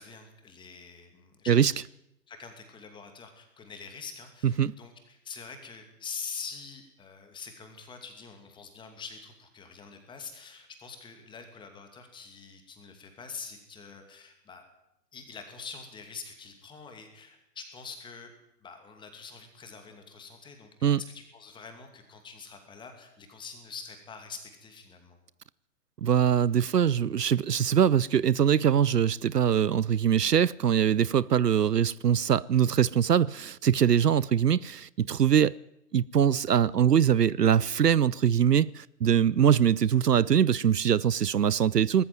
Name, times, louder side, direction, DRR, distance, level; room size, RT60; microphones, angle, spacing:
voice 1, 0.0-1.7 2.3-14.6 15.1-18.3 18.6-25.2 34.1-34.2, left 5 dB, 10° left, 2.5 m, -45 dB
voice 2, 26.0-35.6 35.9-42.0, right 8 dB, 75° right, 0.7 m, -23 dB
20.0 x 14.0 x 9.3 m
figure-of-eight pair, 130°, 49 cm